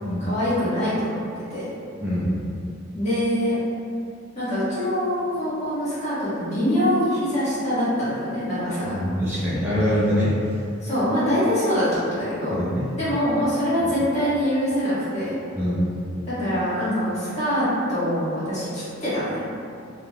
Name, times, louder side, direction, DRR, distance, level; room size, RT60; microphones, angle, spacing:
voice 1, 0.2-1.7 2.9-3.5 4.3-9.0 10.8-12.5 13.0-15.3 16.3-19.5, equal, 35° left, -13 dB, 1.4 m, -24 dB
voice 2, 2.0-2.3 8.9-10.3 12.5-12.9 13.8-13.9 15.6-15.9, equal, 10° right, -11 dB, 0.4 m, -24 dB
3.1 x 2.4 x 2.3 m, 2.4 s
head